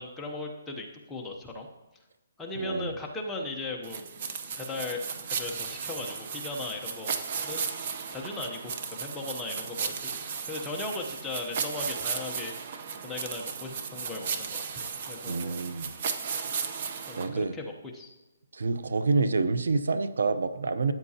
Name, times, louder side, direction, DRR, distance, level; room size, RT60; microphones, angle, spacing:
voice 1, 0.0-1.7 2.4-4.0 4.6-5.0 5.3-7.2 7.4-7.6 8.1-10.2 10.5-12.5 13.0-15.6 17.1-18.1, left 2 dB, 5° left, -1 dB, 0.8 m, -37 dB
voice 2, 2.6-2.9 15.3-15.9 17.2-17.6 18.5-20.9, right 3 dB, 80° right, 12 dB, 0.7 m, -27 dB
sound 1, 3.8-17.3, right 6 dB, 35° right, 0.8 m, -35 dB
13.0 x 8.9 x 2.8 m, 1.1 s
hypercardioid pair, 170°, 0 cm